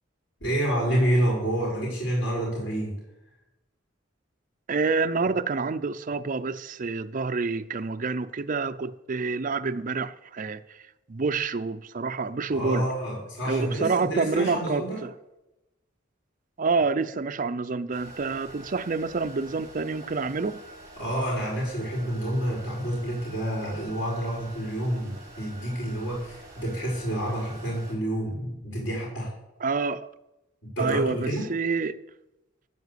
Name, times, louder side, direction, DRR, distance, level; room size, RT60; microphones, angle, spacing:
voice 1, 0.4-3.0 12.5-15.0 21.0-29.3 30.7-31.5, right 1 dB, 80° left, 5.1 m, -28 dB
voice 2, 4.7-10.6 11.1-12.9 13.4-15.1 16.6-20.6 29.6-30.1 30.8-32.0, right 4 dB, 45° right, 0.5 m, -28 dB
sound 1, 17.9-27.9, right 2 dB, 20° right, 3.7 m, -46 dB
14.0 x 4.9 x 8.3 m
head